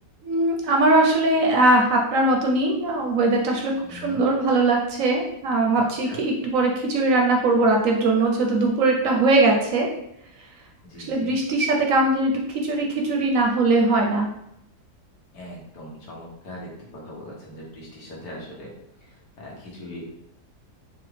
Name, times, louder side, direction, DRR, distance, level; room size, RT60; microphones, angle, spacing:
voice 1, 0.2-9.9 11.0-14.3, right 2 dB, 65° right, 0 dB, 0.9 m, -21 dB
voice 2, 3.8-4.2 5.7-6.2 9.0-9.2 10.8-11.3 15.3-18.7 19.0-20.1, left 1 dB, 80° left, -3 dB, 1.7 m, -40 dB
4.9 x 2.4 x 3.3 m, 0.80 s
omnidirectional pair, 1.7 m